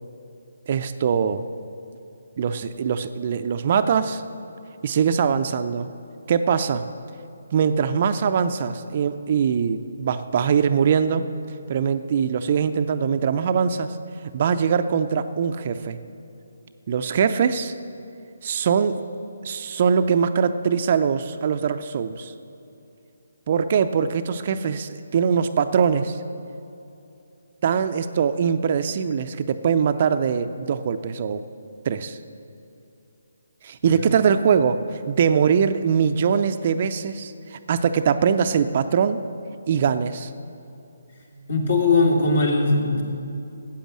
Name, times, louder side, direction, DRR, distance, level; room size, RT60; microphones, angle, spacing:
voice 1, 0.7-1.4 2.4-4.2 4.8-5.9 6.3-6.8 7.5-11.3 11.7-14.0 14.3-16.0 16.9-17.7 18.4-19.1 19.4-22.3 23.5-26.2 27.6-31.4 31.9-32.2 33.6-39.3 39.7-40.3, right 7 dB, 40° right, 10 dB, 0.5 m, -22 dB
voice 2, 41.3-43.0, left 3 dB, 55° left, 0 dB, 2.6 m, -20 dB
13.5 x 8.6 x 7.4 m, 2.8 s
figure-of-eight pair, 145°, 0 cm